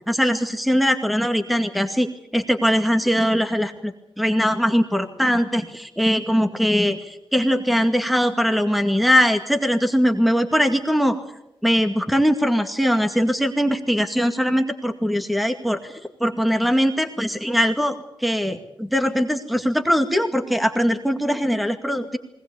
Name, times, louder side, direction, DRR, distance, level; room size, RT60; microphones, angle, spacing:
voice 1, 0.1-2.1 2.3-11.2 11.6-15.9 16.2-22.2, equal, ahead, 7 dB, 2.1 m, -21 dB
20.5 x 19.0 x 8.4 m, 0.83 s
cardioid pair, 65°, 10 cm